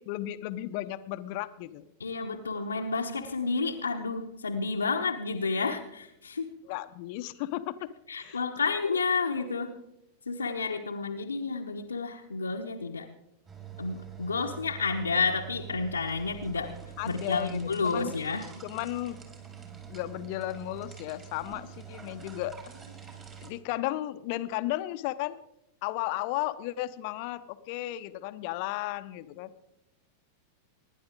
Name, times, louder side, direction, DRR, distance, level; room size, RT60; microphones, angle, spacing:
voice 1, 0.0-1.9 6.6-7.9 8.2-8.4 17.0-18.1 18.6-19.2 19.9-22.5 23.4-25.4 25.8-29.5, left 16 dB, 45° left, 12 dB, 0.8 m, -34 dB
voice 2, 2.0-6.5 8.1-9.8 10.3-13.1 13.8-16.7 17.0-18.5, left 4 dB, 75° left, 0 dB, 1.0 m, -30 dB
sound 1, 13.5-23.5, right 8 dB, 25° right, 4.2 m, -45 dB
25.5 x 11.0 x 3.7 m, 0.81 s
figure-of-eight pair, 90°, 0 cm